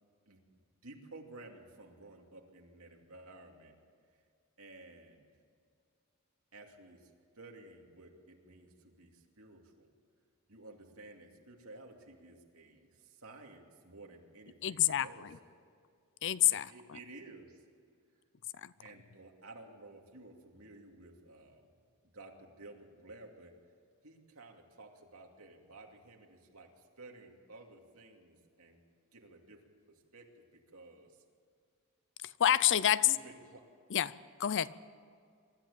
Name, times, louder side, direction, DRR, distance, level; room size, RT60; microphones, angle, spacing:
voice 1, 0.8-3.7 4.6-5.3 6.5-7.1 7.4-9.9 10.5-15.3 16.7-17.6 18.8-21.7 22.1-23.5 24.0-28.8 29.1-31.2 33.0-33.7, right 2 dB, 70° right, 2 dB, 2.7 m, -54 dB
voice 2, 14.6-15.1 16.2-16.7 32.4-33.1 33.9-34.1 34.4-34.7, left 11 dB, 60° left, 18 dB, 0.5 m, -27 dB
24.0 x 13.0 x 8.7 m, 2.2 s
head